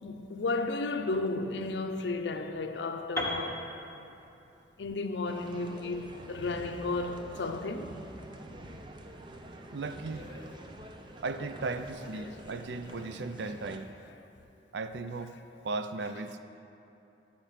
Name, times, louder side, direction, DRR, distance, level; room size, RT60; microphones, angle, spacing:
voice 1, 0.0-3.7 4.8-8.0 12.2-12.3, left 3 dB, 75° left, 0.5 m, -33 dB
Piano, 3.2-7.1, left 1 dB, 15° left, 0.9 m, -39 dB
sound 1, 5.3-13.8, right 1 dB, 25° right, 0.5 m, -47 dB
voice 2, 9.7-10.2 11.2-13.9 14.7-15.4 15.6-16.4, right 3 dB, 75° right, 0.5 m, -36 dB
11.5 x 4.4 x 7.4 m
head